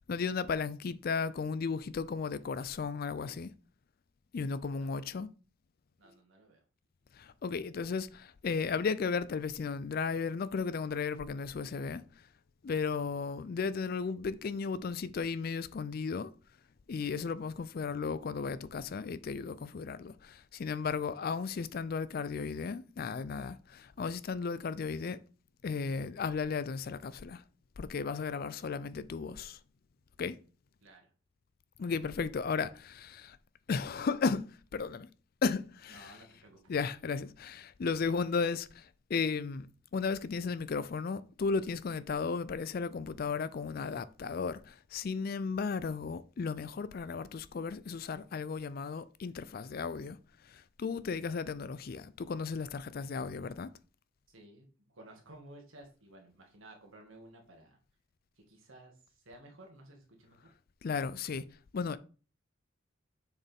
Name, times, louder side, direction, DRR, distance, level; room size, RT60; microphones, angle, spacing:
voice 1, 0.1-3.5 4.3-5.3 7.1-12.3 12.6-16.3 16.9-25.2 25.6-27.4 27.8-29.6 30.2-30.4 31.8-33.4 33.7-35.1 35.4-36.1 36.7-39.7 39.9-50.2 50.4-53.7 60.8-61.5 61.7-62.0, left 5 dB, 45° left, 0.4 m, -35 dB
voice 2, 4.4-4.9 6.0-6.6 21.2-21.6 30.8-31.1 35.9-36.8 54.3-57.8 58.4-60.4, right 1 dB, 75° right, 1.9 m, -55 dB
7.0 x 4.5 x 3.5 m
head